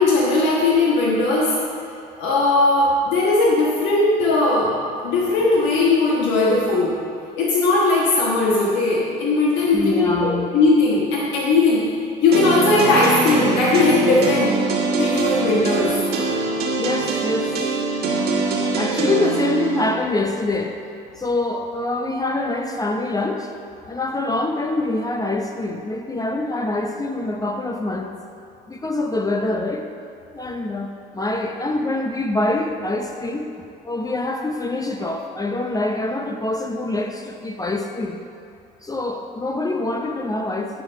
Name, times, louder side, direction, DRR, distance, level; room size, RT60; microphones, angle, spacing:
voice 1, 0.0-1.5 2.2-7.0 7.4-11.9 12.2-14.6 15.0-16.0, left 3 dB, 70° left, -4 dB, 1.4 m, -18 dB
voice 2, 9.7-10.5 16.8-17.6 18.8-20.8 21.2-23.5 23.9-28.1 28.7-29.9 30.3-38.2 38.8-40.8, left 2 dB, 20° left, 4 dB, 0.7 m, -25 dB
sound 1, 12.3-19.9, right 3 dB, 60° right, 1.4 m, -23 dB
9.7 x 4.9 x 5.7 m, 2.4 s
supercardioid pair, 70°, 19 cm